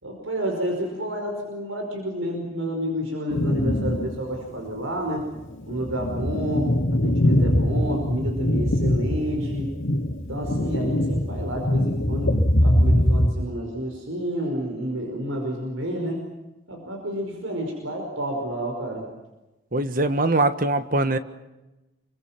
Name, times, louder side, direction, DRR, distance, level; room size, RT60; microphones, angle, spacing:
voice 1, 0.0-5.2 5.7-6.7 7.0-9.7 10.3-12.3 12.6-16.2 16.7-19.1, equal, 85° right, 2 dB, 5.2 m, -30 dB
sound 1, 3.3-4.2 4.6-4.7 5.4-13.3, left 1 dB, 80° left, 2.3 m, -22 dB
voice 2, 19.7-21.2, right 2 dB, 45° right, 10 dB, 1.4 m, -22 dB
28.5 x 24.0 x 6.0 m, 1.0 s
head